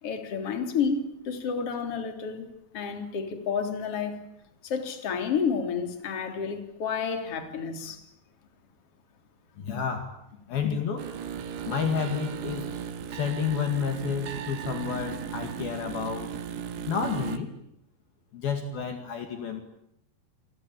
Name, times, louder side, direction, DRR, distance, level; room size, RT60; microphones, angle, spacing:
voice 1, 0.0-2.5 2.7-4.2 4.6-8.0 9.7-9.8 10.6-10.8, left 6 dB, 35° left, 6 dB, 3.8 m, -30 dB
voice 2, 9.6-10.1 10.5-11.1 11.7-12.7 13.1-16.3 16.9-17.5 18.3-19.6, left 6 dB, 55° left, 6 dB, 3.8 m, -30 dB
sound 1, 11.0-17.4, right 8 dB, 70° right, 4.0 m, -36 dB
29.0 x 22.5 x 8.9 m, 0.78 s
omnidirectional pair, 5.4 m